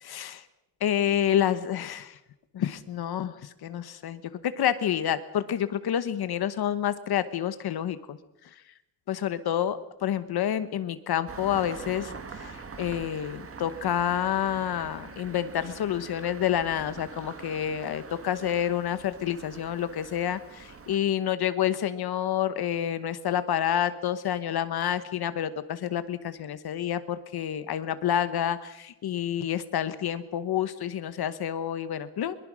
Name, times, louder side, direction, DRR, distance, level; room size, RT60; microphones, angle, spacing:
voice 1, 0.0-0.4 0.8-2.1 2.5-8.2 9.1-32.4, left 10 dB, 60° left, 12 dB, 1.1 m, -28 dB
Engine starting, 11.3-21.0, right 4 dB, 30° right, 1.9 m, -44 dB
22.5 x 22.5 x 6.3 m, 0.92 s
wide cardioid pair, 175°, 42 cm